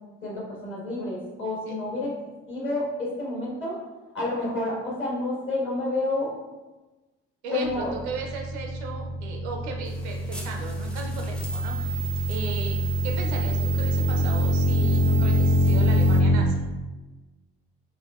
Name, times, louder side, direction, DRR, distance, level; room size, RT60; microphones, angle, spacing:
voice 1, 0.2-2.1 2.5-3.7 4.1-6.3 7.5-7.9, left 2 dB, 35° left, -5 dB, 1.4 m, -29 dB
voice 2, 7.4-12.0 12.3-16.6, right 3 dB, 80° right, 2 dB, 0.5 m, -36 dB
sound 1, 7.6-16.4, left 1 dB, 80° left, 0.6 m, -24 dB
sound 2, 9.9-16.2, right 7 dB, 5° left, 0.6 m, -36 dB
3.5 x 2.5 x 2.3 m, 1.2 s
figure-of-eight pair, 50°, 33 cm